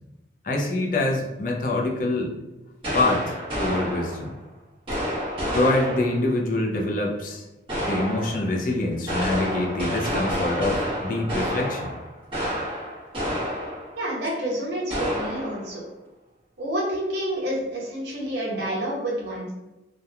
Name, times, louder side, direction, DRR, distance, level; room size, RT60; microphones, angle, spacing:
voice 1, 0.4-2.3 2.9-4.3 5.5-7.4 7.8-11.9, left 2 dB, 45° left, 0 dB, 0.4 m, -25 dB
sound 1, 2.8-4.4 4.9-6.3 7.7-8.5 8.9-14.0 14.2-14.3 14.9-15.7, equal, 30° right, 1.0 m, -29 dB
voice 2, 14.0-15.8 16.6-19.5, right 1 dB, 75° right, -3 dB, 0.8 m, -28 dB
2.8 x 2.1 x 2.3 m, 1.0 s
head